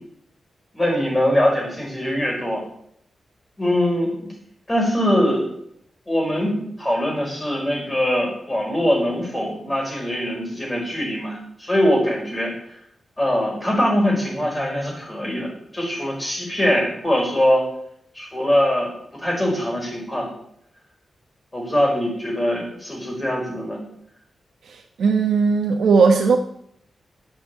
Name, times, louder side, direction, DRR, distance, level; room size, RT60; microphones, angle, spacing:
voice 1, 0.7-2.6 3.6-4.1 4.7-5.5 6.1-6.5 6.8-12.5 13.2-17.6 18.1-20.3 21.5-23.8, equal, 15° left, -1 dB, 5.2 m, -22 dB
voice 2, 24.7-26.4, right 5 dB, 85° right, 2 dB, 1.2 m, -18 dB
10.0 x 7.7 x 9.1 m, 0.70 s
wide cardioid pair, 125°, 0 cm